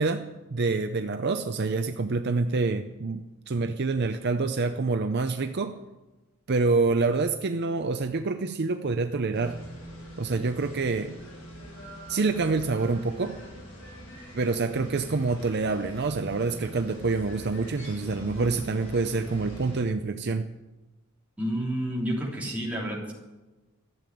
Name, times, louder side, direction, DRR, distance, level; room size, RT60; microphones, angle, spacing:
voice 1, 0.0-5.8 6.5-9.6 10.2-11.2 12.1-13.4 14.3-20.5, right 3 dB, 50° right, 8 dB, 0.5 m, -27 dB
sound 1, 9.3-19.8, equal, 65° left, 6.4 m, -43 dB
voice 2, 21.4-23.1, equal, 5° right, -4 dB, 3.3 m, -30 dB
14.0 x 7.7 x 9.2 m, 1.1 s
head